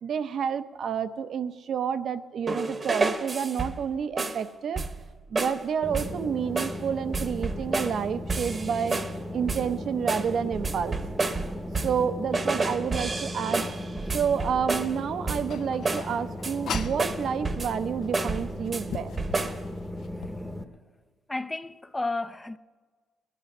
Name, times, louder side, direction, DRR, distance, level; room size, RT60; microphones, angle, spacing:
voice 1, 0.0-4.8 5.3-9.0 9.3-11.0 11.8-13.7 14.1-19.1, right 7 dB, 60° right, 0.7 m, -29 dB
sound 1, 2.5-3.9 4.2-4.4 4.8-5.1 5.4-5.6 5.9-6.2 6.6-6.8 7.1-8.0 8.3-9.2 9.5-9.8 10.1-12.1 12.3-15.0 15.3-15.6 15.8-16.1 16.4-17.8 18.1-18.9 19.2-19.6, right 3 dB, 30° right, 1.0 m, -30 dB
sound 2, 5.8-20.6, left 1 dB, 5° right, 0.9 m, -37 dB
sound 3, 15.5-17.1 18.0-18.1 18.6-20.4, left 7 dB, 65° left, 0.6 m, -38 dB
voice 2, 21.3-22.6, left 2 dB, 15° left, 0.5 m, -32 dB
20.0 x 10.0 x 5.4 m
cardioid pair, 90°, 0 cm